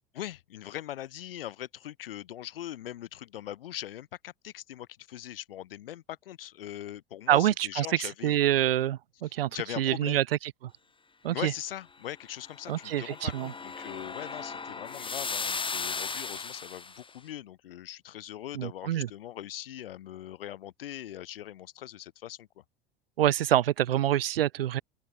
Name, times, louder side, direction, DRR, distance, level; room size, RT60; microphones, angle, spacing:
voice 1, 0.1-8.4 9.2-10.2 11.3-22.6, left 12 dB, 70° left, 4.4 m, -41 dB
voice 2, 7.3-9.5 9.8-10.2 11.2-11.5 12.7-13.5 18.6-19.1 23.2-24.8, right 12 dB, 75° right, 0.7 m, -26 dB
Misty Step, 12.4-17.0, left 4 dB, 15° left, 2.6 m, -36 dB
open air
figure-of-eight pair, 75°, 29 cm